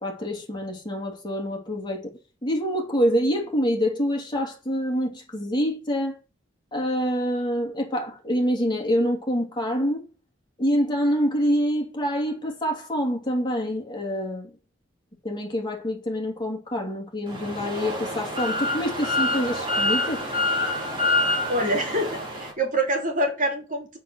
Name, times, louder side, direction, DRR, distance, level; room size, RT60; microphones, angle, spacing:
voice 1, 0.0-2.1 2.4-6.2 6.7-10.0 10.6-14.5 15.2-20.2, equal, 25° left, 2.8 m, -26 dB
sound 1, 17.3-22.5, left 2 dB, 25° right, 3.7 m, -26 dB
voice 2, 21.5-24.0, right 1 dB, 45° right, 3.1 m, -26 dB
7.6 x 6.8 x 6.3 m
head